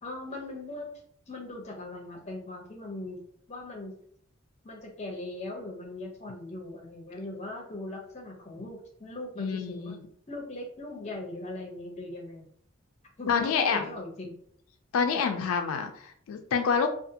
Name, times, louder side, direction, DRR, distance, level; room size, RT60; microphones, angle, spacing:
voice 1, 0.0-0.9 1.3-3.2 3.5-4.0 4.6-10.0 10.3-12.5 13.2-14.4, left 2 dB, 30° left, 0 dB, 0.5 m, -39 dB
voice 2, 9.4-10.0 13.3-13.8 14.9-16.9, left 6 dB, 85° left, 6 dB, 0.3 m, -27 dB
2.5 x 2.3 x 2.7 m, 0.62 s
head